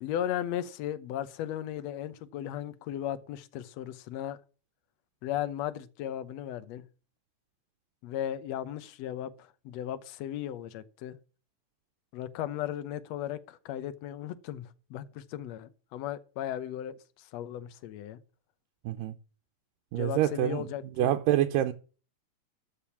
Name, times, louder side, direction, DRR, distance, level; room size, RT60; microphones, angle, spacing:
voice 1, 0.0-4.4 5.2-6.8 8.0-11.2 12.1-18.2 19.9-21.1, left 11 dB, 70° left, 1.8 m, -36 dB
voice 2, 18.9-19.2 19.9-20.7 21.0-21.7, right 12 dB, 85° right, 2.4 m, -26 dB
13.0 x 5.3 x 7.2 m
omnidirectional pair, 3.8 m